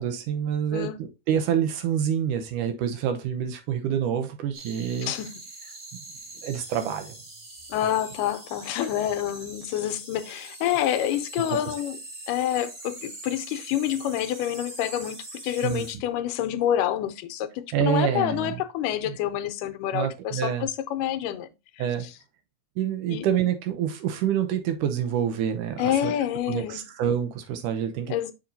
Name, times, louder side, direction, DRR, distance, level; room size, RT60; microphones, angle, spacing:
voice 1, 0.0-5.1 6.4-7.2 15.6-15.9 17.7-18.6 19.1-19.2 19.9-20.7 21.8-22.1 22.8-26.1 26.5-28.2, right 9 dB, 80° right, 2.4 m, -27 dB
voice 2, 0.7-1.0 5.0-5.4 7.7-12.0 12.3-21.5 21.8-22.1 23.1-23.3 25.8-26.8 28.1-28.3, left 11 dB, 90° left, 2.3 m, -28 dB
sound 1, 4.5-15.9, right 2 dB, 40° right, 1.1 m, -43 dB
7.0 x 5.7 x 2.6 m
omnidirectional pair, 3.7 m